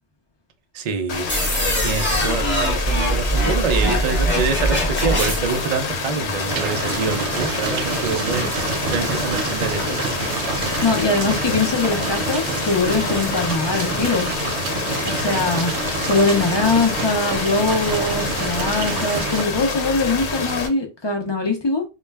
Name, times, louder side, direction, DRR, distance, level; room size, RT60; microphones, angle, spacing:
voice 1, 0.7-1.3 1.8-10.1 15.1-15.4, right 5 dB, 70° right, 0.3 m, -26 dB
sound 1, 1.1-20.7, left 4 dB, 70° left, 0.9 m, -27 dB
sound 2, 1.3-5.7, right 1 dB, 10° left, 0.8 m, -22 dB
sound 3, 6.5-19.4, right 5 dB, 85° right, 0.9 m, -27 dB
voice 2, 10.8-14.3 15.1-15.7 16.1-21.8, left 3 dB, 40° left, 0.3 m, -22 dB
2.3 x 2.1 x 3.2 m
omnidirectional pair, 1.2 m